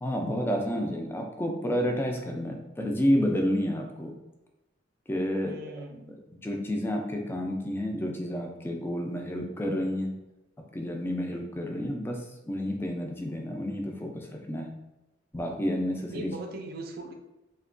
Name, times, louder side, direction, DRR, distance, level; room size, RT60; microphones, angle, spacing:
voice 1, 0.0-4.1 5.1-5.8 6.4-10.1 10.7-14.7 15.3-16.3, equal, 10° left, 1 dB, 0.3 m, -30 dB
voice 2, 5.4-6.1 16.0-17.1, right 2 dB, 55° right, 3 dB, 0.4 m, -40 dB
2.8 x 2.1 x 2.5 m, 0.97 s
head